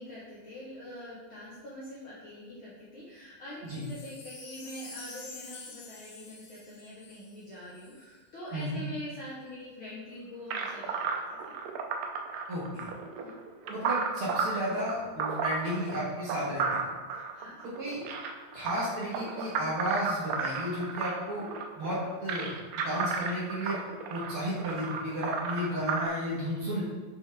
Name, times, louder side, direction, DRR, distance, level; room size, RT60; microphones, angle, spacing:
voice 1, 0.0-11.5 13.2-13.3 17.1-17.7, left 1 dB, 55° left, -8 dB, 1.5 m, -44 dB
Wind chime, 3.7-8.0 8.6-8.7, left 4 dB, 80° left, 2.5 m, -48 dB
sound 1, 10.5-26.1, right 5 dB, 90° right, 2.3 m, -33 dB
voice 2, 12.5-12.9 13.6-16.8 17.6-18.0 18.5-21.4 21.8-22.5 22.8-23.8 24.1-26.8, equal, 50° right, -7 dB, 2.0 m, -33 dB
6.1 x 5.4 x 3.4 m, 1.3 s
omnidirectional pair, 3.6 m